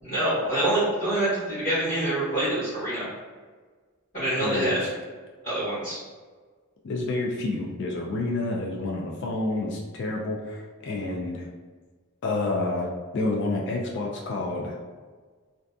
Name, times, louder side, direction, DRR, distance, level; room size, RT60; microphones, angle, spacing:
voice 1, 0.0-3.1 4.1-4.8 5.4-6.0, right 1 dB, 35° left, -13 dB, 1.0 m, -26 dB
voice 2, 4.4-4.9 6.8-11.5 12.2-14.8, left 2 dB, 55° left, -1 dB, 0.3 m, -29 dB
2.6 x 2.3 x 2.2 m, 1.5 s
head